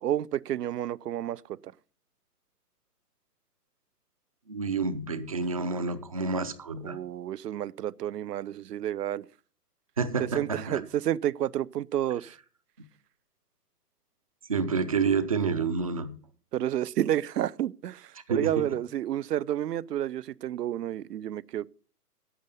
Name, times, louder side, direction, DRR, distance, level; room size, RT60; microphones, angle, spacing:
voice 1, 0.0-1.7 6.8-9.3 10.2-12.3 16.5-21.7, right 11 dB, 80° right, 0.6 m, -30 dB
voice 2, 4.5-7.0 10.0-10.8 14.5-16.2 18.3-18.7, right 5 dB, 25° right, 0.5 m, -29 dB
11.0 x 8.1 x 5.3 m
hypercardioid pair, 145°, 48 cm